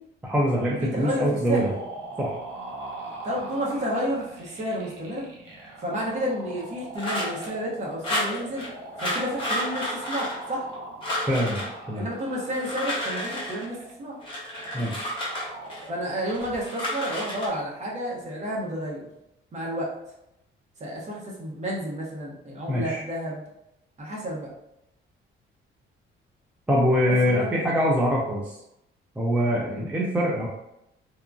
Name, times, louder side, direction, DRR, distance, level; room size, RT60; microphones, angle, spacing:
voice 1, 0.2-1.7 2.2-2.4 11.3-12.0 14.7-15.1 22.7-23.0 26.7-28.6 29.2-30.5, equal, 5° right, -4 dB, 0.3 m, -24 dB
sound 1, 0.7-16.6, right 2 dB, 75° right, 0.7 m, -41 dB
voice 2, 0.8-1.7 3.2-5.3 5.8-8.7 9.0-10.7 11.9-14.2 15.9-19.1 19.5-19.9 20.8-23.4 24.0-24.5 27.1-27.6 29.7-29.9, equal, 35° right, -4 dB, 0.8 m, -31 dB
sound 2, 7.0-7.5 8.0-8.7 9.0-10.8 11.0-11.7 12.4-13.7 14.2-15.9 16.3-17.5, left 1 dB, 25° left, 0.9 m, -31 dB
2.8 x 2.3 x 2.4 m, 0.83 s
cardioid pair, 150°, 21 cm